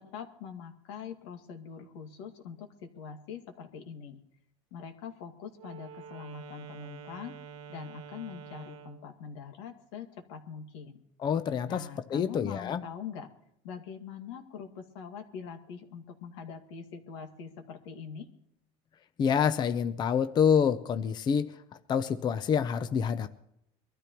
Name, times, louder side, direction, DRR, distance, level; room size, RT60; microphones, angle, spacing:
voice 1, 0.0-4.2 4.7-7.3 7.7-11.0 11.6-13.3 13.6-18.3, left 7 dB, 85° left, 4 dB, 2.2 m, -43 dB
Wind instrument woodwind instrument, 5.5-9.1, right 7 dB, 75° right, 1.3 m, -47 dB
voice 2, 11.2-12.8 19.2-21.5 21.9-23.3, left 7 dB, 30° left, 10 dB, 0.6 m, -27 dB
24.0 x 13.5 x 3.0 m, 0.77 s
supercardioid pair, 135°, 15 cm